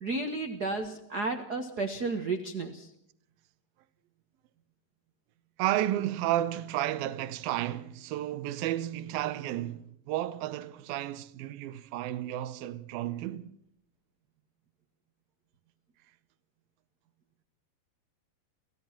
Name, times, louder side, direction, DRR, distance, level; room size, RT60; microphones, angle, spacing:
voice 1, 0.0-2.9, right 3 dB, 50° right, 1.1 m, -32 dB
voice 2, 5.6-13.5, right 13 dB, 80° right, 2.8 m, -32 dB
29.5 x 15.5 x 6.0 m
omnidirectional pair, 4.2 m